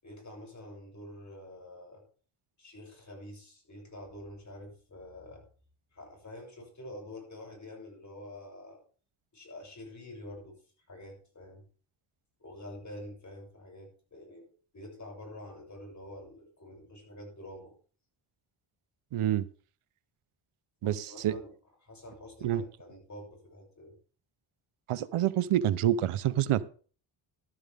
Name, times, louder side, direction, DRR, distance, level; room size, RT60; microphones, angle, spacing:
voice 1, 0.0-2.0 2.6-5.4 5.9-8.8 9.3-11.6 12.4-14.5 14.7-17.7 20.8-21.5 21.8-23.9, left 1 dB, 35° left, 1 dB, 7.3 m, -47 dB
voice 2, 19.1-19.4 20.8-21.3 22.4-22.6 24.9-26.7, right 11 dB, 90° right, 16 dB, 0.9 m, -27 dB
14.5 x 12.5 x 3.6 m, 0.40 s
cardioid pair, 105°, 49 cm